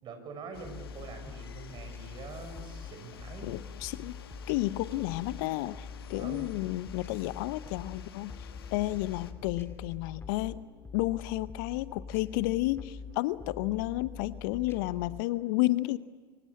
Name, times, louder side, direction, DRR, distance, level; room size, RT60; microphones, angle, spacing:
voice 1, 0.0-3.5 6.1-6.5, right 4 dB, 40° right, 6 dB, 6.2 m, -44 dB
sound 1, 0.5-9.3, left 8 dB, 75° left, 1.6 m, -51 dB
sound 2, 0.5-15.2, left 5 dB, 20° left, 2.1 m, -45 dB
voice 2, 3.4-4.1 4.5-8.3 8.7-10.6 10.9-16.0, left 18 dB, 60° left, 16 dB, 0.8 m, -31 dB
25.0 x 24.5 x 8.6 m, 1.4 s
figure-of-eight pair, 80°, 13 cm